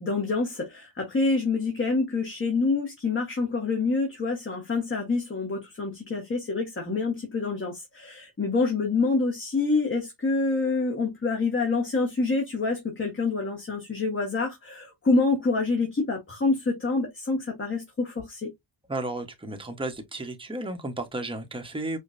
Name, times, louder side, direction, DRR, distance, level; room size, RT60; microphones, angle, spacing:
voice 1, 0.0-18.5, left 3 dB, 25° left, 1.3 m, -27 dB
voice 2, 18.9-22.0, right 2 dB, 10° right, 1.0 m, -33 dB
5.0 x 2.2 x 2.5 m
cardioid pair, 105°, 48 cm